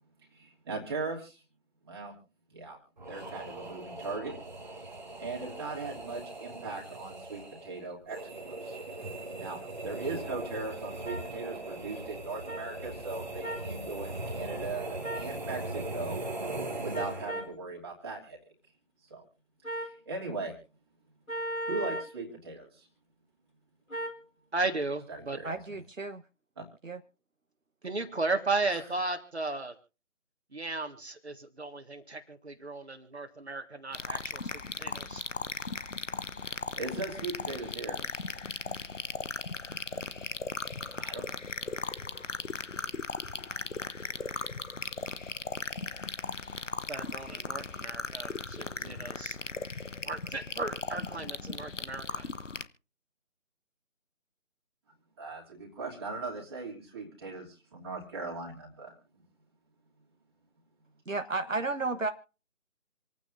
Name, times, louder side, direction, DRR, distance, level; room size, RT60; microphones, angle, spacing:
voice 1, 0.3-1.4 1.8-2.1 2.5-2.8 3.1-4.3 4.8-4.9 5.2-8.8 9.3-14.9 15.1-16.2 16.8-18.4 19.1-19.2 19.7-20.5 21.7-22.9 25.1-25.8 26.6-26.7 36.8-38.0 41.0-41.2 48.8-49.0 55.2-58.9, right 3 dB, 20° right, -2 dB, 2.7 m, -39 dB
sound 1, 3.0-17.5, right 2 dB, 35° right, 1.6 m, -40 dB
sound 2, 11.0-11.2 12.5-12.6 13.4-13.7 15.0-15.3 16.9-17.5 19.6-20.0 21.3-22.1 23.9-24.2, right 1 dB, 80° left, 4.1 m, -36 dB
voice 2, 24.5-25.4 27.8-29.7 30.5-35.2 46.9-49.4 50.0-52.3, right 3 dB, 50° right, 6 dB, 1.8 m, -35 dB
voice 3, 25.4-26.2 26.8-27.0 61.1-62.1, right 3 dB, 70° right, 7 dB, 1.1 m, -32 dB
sound 3, 33.9-52.6, left 4 dB, 60° left, 1.1 m, -37 dB
27.5 x 9.5 x 2.6 m, 0.35 s
figure-of-eight pair, 160°, 41 cm